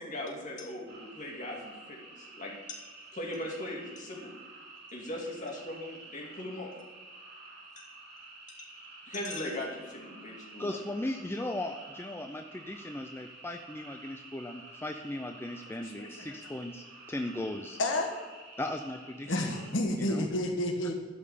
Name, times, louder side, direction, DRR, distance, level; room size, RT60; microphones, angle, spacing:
voice 1, 0.0-2.8 3.1-4.3 4.9-6.7 8.6-8.7 9.0-10.8, left 1 dB, 40° left, -2 dB, 2.4 m, -39 dB
sound 1, 0.9-19.7, right 2 dB, 55° right, 3.0 m, -50 dB
voice 2, 10.6-17.8 18.6-19.6 20.0-20.3, left 1 dB, 10° left, 4 dB, 0.5 m, -37 dB
voice 3, 16.0-16.3 17.8-18.1 19.3-20.9, left 1 dB, 75° left, 3 dB, 1.3 m, -30 dB
12.5 x 5.5 x 6.8 m, 1.4 s
head